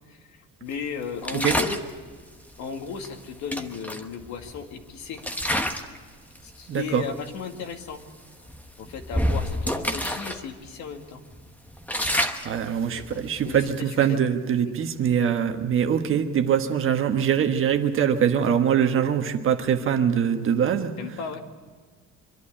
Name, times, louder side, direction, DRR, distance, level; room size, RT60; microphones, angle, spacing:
voice 1, 0.1-1.8 2.6-5.2 6.4-8.0 8.8-11.2 12.9-14.2 21.0-21.4, left 6 dB, 70° left, 4 dB, 2.2 m, -35 dB
sound 1, 1.2-1.9 3.0-3.1 3.5-4.7 5.2-6.0 6.3-6.6 7.3-7.4 7.7-7.9 8.5-10.4 10.7-10.8 11.3-13.8, equal, 5° left, 1.1 m, -28 dB
voice 2, 6.7-7.0 12.4-20.9, right 8 dB, 45° right, 6 dB, 1.4 m, -23 dB
24.5 x 11.5 x 10.0 m, 1.5 s
cardioid pair, 145°, 29 cm